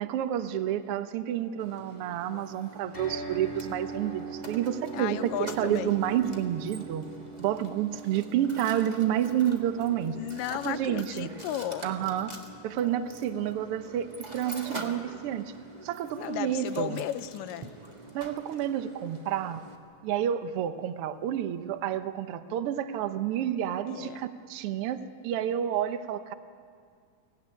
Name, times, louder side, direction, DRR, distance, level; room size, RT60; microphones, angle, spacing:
voice 1, 0.0-7.1 7.4-10.1 10.5-11.3 11.8-12.4 12.6-14.1 14.3-15.5 15.8-17.0 18.1-19.6 20.0-26.3, right 10 dB, 75° right, 10 dB, 1.3 m, -29 dB
Mechanisms, 1.6-19.7, right 1 dB, 20° right, 1.2 m, -46 dB
sound 1, 2.9-17.1, right 3 dB, 15° left, 7.1 m, -44 dB
voice 2, 4.9-5.9 10.2-11.9 16.1-17.7 23.9-24.2, left 12 dB, 85° left, 11 dB, 2.4 m, -34 dB
24.0 x 17.0 x 9.8 m, 2.2 s
omnidirectional pair, 3.8 m